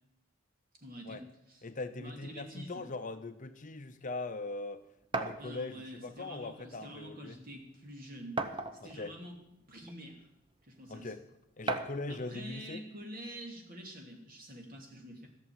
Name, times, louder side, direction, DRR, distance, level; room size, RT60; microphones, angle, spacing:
voice 1, 0.8-1.2 1.5-1.6 2.0-2.8 5.4-8.4 8.7-10.3 10.6-11.1 12.1-15.3, equal, 45° right, 1 dB, 2.8 m, -47 dB
voice 2, 1.6-4.8 5.1-7.4 8.8-9.1 10.9-11.2 11.6-12.8, left 3 dB, 40° left, 9 dB, 0.7 m, -41 dB
sound 1, 5.1-5.4 6.5-6.6 7.1-7.2 8.4-9.0 9.8-9.9 11.7-12.1, right 3 dB, 25° right, 0.9 m, -34 dB
14.0 x 7.0 x 9.3 m, 0.83 s
head